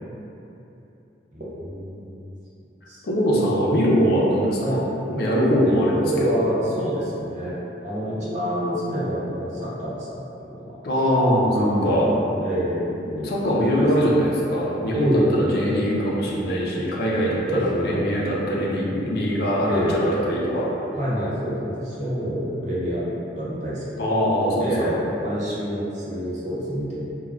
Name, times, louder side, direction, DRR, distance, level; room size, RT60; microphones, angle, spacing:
voice 1, 1.3-2.1 2.9-3.0 4.6-4.8 5.6-10.7 11.5-13.3 13.6-13.9 14.9-15.4 17.5-18.1 19.6-20.0 21.0-24.1 24.6-27.0, equal, 40° right, -8 dB, 0.6 m, -27 dB
voice 2, 3.0-4.8 5.1-6.4 10.8-12.1 13.2-20.7 24.0-25.0, equal, 60° left, -4 dB, 0.4 m, -22 dB
2.2 x 2.2 x 3.4 m, 2.9 s
head